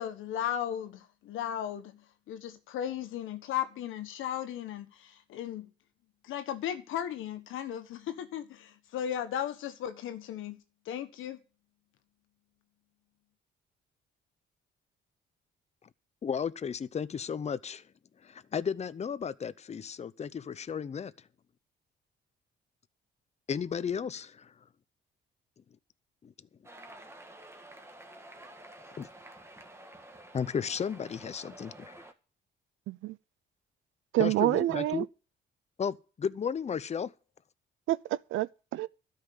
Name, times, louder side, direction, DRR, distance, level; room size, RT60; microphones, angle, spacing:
voice 1, 0.0-5.7 6.2-10.6 10.8-11.4, left 10 dB, 85° left, 1.5 m, -36 dB
voice 2, 16.2-17.8 18.2-21.1 23.5-24.5 26.2-26.3 29.0-29.1 30.3-32.0 34.2-35.1 35.8-37.1, left 7 dB, 35° left, 0.7 m, -34 dB
sound 1, 26.6-32.1, right 1 dB, 15° right, 1.8 m, -50 dB
voice 3, 34.1-35.0 37.9-38.9, right 16 dB, 85° right, 0.6 m, -28 dB
12.5 x 5.7 x 8.5 m
cardioid pair, 90°, 20 cm